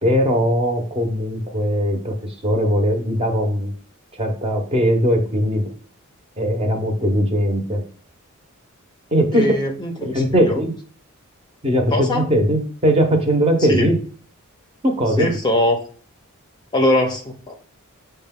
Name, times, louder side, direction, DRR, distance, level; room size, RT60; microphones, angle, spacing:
voice 1, 0.0-3.7 4.2-5.7 6.4-7.8 9.1-9.5 10.0-10.7 11.6-14.0 14.8-15.3, equal, 25° right, 3 dB, 0.8 m, -19 dB
voice 2, 9.3-10.6 11.9-12.3 13.7-13.9 15.2-15.8 16.7-17.7, left 1 dB, 20° left, 3 dB, 0.6 m, -21 dB
6.3 x 2.2 x 3.6 m, 0.43 s
head